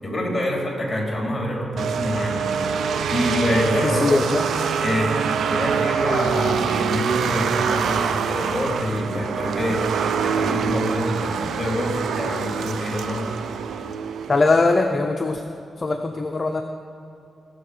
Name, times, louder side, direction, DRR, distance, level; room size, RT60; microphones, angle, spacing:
voice 1, 0.0-2.5 3.1-4.2 4.8-5.2 5.5-9.8 10.2-13.3, equal, 15° left, -1 dB, 3.1 m, -26 dB
sound 1, 1.8-14.8, right 6 dB, 80° right, 0.5 m, -25 dB
voice 2, 3.8-4.4 14.3-15.4 15.8-16.6, left 3 dB, 35° left, 4 dB, 0.6 m, -21 dB
19.0 x 6.8 x 4.8 m, 2.6 s
cardioid pair, 100°, 0 cm